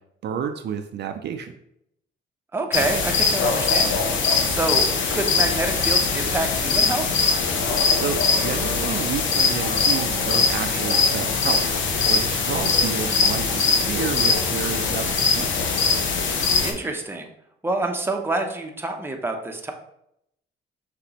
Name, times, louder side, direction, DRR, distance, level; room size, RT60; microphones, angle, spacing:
voice 1, 0.2-1.5 7.9-15.8, right 8 dB, 60° right, 6 dB, 0.4 m, -31 dB
voice 2, 2.5-4.0 4.4-7.1 16.6-17.3 17.6-19.7, right 2 dB, 10° right, 3 dB, 0.7 m, -27 dB
sound 1, 2.7-16.7, left 5 dB, 70° left, 0.8 m, -22 dB
5.9 x 2.9 x 2.9 m, 0.76 s
cardioid pair, 90°, 20 cm